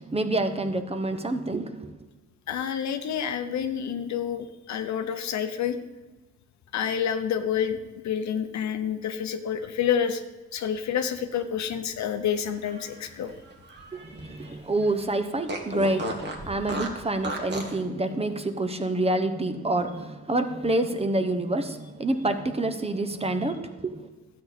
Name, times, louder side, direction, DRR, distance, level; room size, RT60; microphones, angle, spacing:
voice 1, 0.0-1.9 13.9-24.0, right 2 dB, 20° right, 8 dB, 0.9 m, -27 dB
voice 2, 2.5-5.8 6.7-10.2 10.5-13.3, left 8 dB, 65° left, 9 dB, 0.9 m, -28 dB
Fart, 12.5-14.5 14.8-14.9 15.5-17.8, right 1 dB, 35° right, 1.8 m, -35 dB
12.5 x 8.3 x 4.2 m, 1.2 s
cardioid pair, 90°, 30 cm